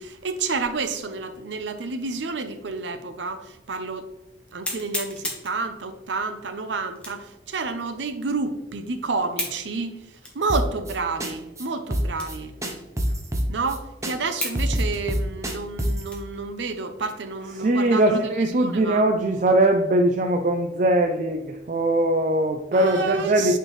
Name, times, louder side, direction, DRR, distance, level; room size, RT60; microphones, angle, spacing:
voice 1, 0.0-4.1 4.5-10.0 10.3-12.5 13.5-18.3 18.6-19.0 22.7-23.6, right 4 dB, 85° right, 9 dB, 0.7 m, -29 dB
sound 1, 3.3-3.4 3.9-4.0 4.6-5.6 6.9-7.3 7.9-8.0 9.3-9.6 10.2-10.4 11.0-11.1 12.1-12.5 12.8-12.9 13.5-13.6 14.4-14.6 14.9-16.4 16.9-17.1 17.5-18.0, left 1 dB, 5° left, 1.2 m, -33 dB
sound 2, 10.5-10.9 11.2-11.3 11.6-11.7 11.9-12.4 12.6-13.8 14.0-14.1 14.4-16.1, equal, 15° right, 0.7 m, -25 dB
voice 2, 17.5-23.6, right 1 dB, 45° right, 5 dB, 0.4 m, -21 dB
8.8 x 4.5 x 3.2 m, 1.0 s
head